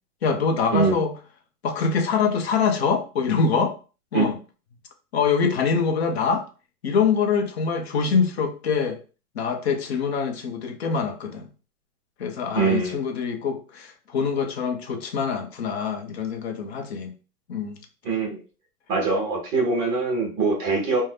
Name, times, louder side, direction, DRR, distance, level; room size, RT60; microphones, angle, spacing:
voice 1, 0.2-1.1 1.6-3.7 4.1-4.4 5.1-6.5 6.8-9.0 9.4-11.5 12.2-17.1 17.5-17.8, left 5 dB, 45° left, 0.6 m, -24 dB
voice 2, 12.5-12.9 18.0-18.4 18.9-21.0, right 4 dB, 15° right, 0.7 m, -23 dB
2.5 x 2.2 x 3.3 m
hypercardioid pair, 150°, 47 cm